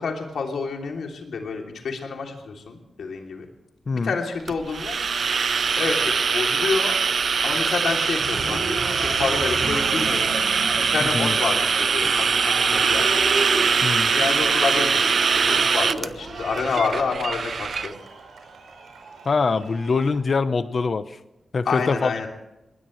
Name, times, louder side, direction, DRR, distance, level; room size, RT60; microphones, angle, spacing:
voice 1, 0.0-3.5 4.0-5.0 5.8-6.9 7.4-8.6 9.0-10.4 10.8-12.2 12.6-13.1 14.1-18.0 21.6-22.3, left 4 dB, 90° left, 2 dB, 3.0 m, -28 dB
voice 2, 3.9-4.2 11.0-11.4 13.8-14.1 19.2-21.2 21.5-22.3, left 4 dB, 45° left, 12 dB, 0.9 m, -24 dB
sound 1, 4.5-17.9, right 5 dB, 55° right, 0.6 m, -22 dB
Cheering, 8.2-20.2, right 3 dB, 80° right, 5.1 m, -34 dB
22.0 x 19.0 x 3.2 m, 0.95 s
wide cardioid pair, 155°, 0 cm